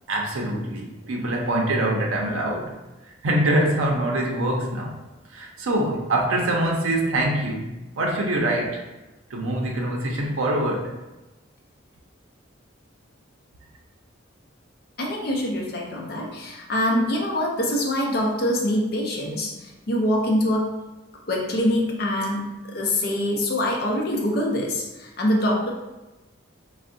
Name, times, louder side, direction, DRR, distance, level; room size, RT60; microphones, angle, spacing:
voice 1, 0.1-2.7 3.2-5.0 5.3-8.8 9.3-10.9, right 1 dB, 85° right, 0 dB, 0.5 m, -24 dB
voice 2, 15.0-20.7 21.3-25.7, left 1 dB, 50° left, -1 dB, 0.5 m, -24 dB
3.4 x 2.0 x 2.6 m, 1.1 s
head